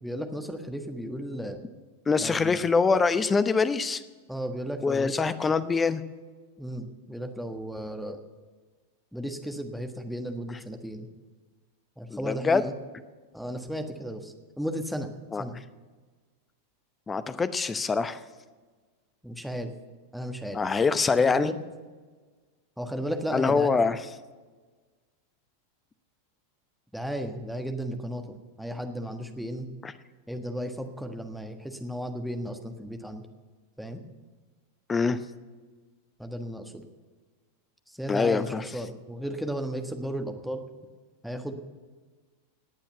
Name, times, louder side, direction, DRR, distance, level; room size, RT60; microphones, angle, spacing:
voice 1, 0.0-1.6 2.1-2.6 4.3-5.2 6.6-8.2 9.1-11.1 12.0-12.7 13.3-15.1 15.4-15.6 19.2-19.7 20.1-20.6 21.2-21.6 22.8-23.7 26.9-29.7 30.3-33.2 33.8-34.0 36.2-36.8 37.9-40.6 41.2-41.5, equal, ahead, 5 dB, 1.5 m, -34 dB
voice 2, 2.1-4.0 4.8-6.0 12.1-12.6 15.3-15.4 17.1-18.2 20.5-21.5 23.3-24.0 29.8-29.9 34.9-35.2 38.1-38.6, left 4 dB, 15° left, 13 dB, 0.8 m, -24 dB
18.5 x 8.9 x 6.9 m, 1.4 s
figure-of-eight pair, 90°, 0 cm